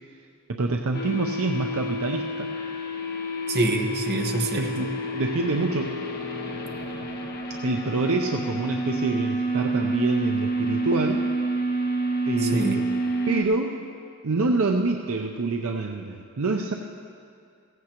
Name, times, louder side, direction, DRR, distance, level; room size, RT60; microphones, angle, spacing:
voice 1, 0.5-2.9 4.5-5.9 7.6-11.2 12.3-12.7 13.3-13.8 14.2-16.7, right 3 dB, 70° right, 2 dB, 0.6 m, -26 dB
sound 1, 0.9-13.4, right 1 dB, 45° left, 1.1 m, -28 dB
voice 2, 3.5-4.9 12.4-12.9, right 2 dB, 50° right, 3 dB, 1.1 m, -26 dB
16.0 x 15.0 x 3.0 m, 2.3 s
head